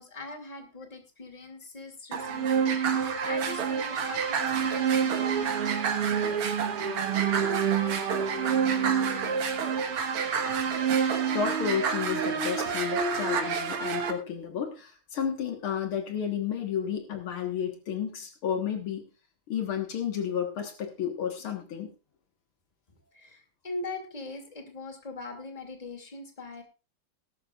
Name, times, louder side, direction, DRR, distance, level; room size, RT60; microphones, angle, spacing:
voice 1, 0.0-8.0 8.4-9.4 23.1-26.6, left 2 dB, 15° left, 4 dB, 2.4 m, -42 dB
sound 1, 2.1-14.1, right 7 dB, 90° right, 2.4 m, -27 dB
voice 2, 11.3-19.1 19.5-21.9, left 8 dB, 70° left, 5 dB, 2.3 m, -32 dB
19.0 x 12.0 x 2.4 m, 0.29 s
omnidirectional pair, 2.4 m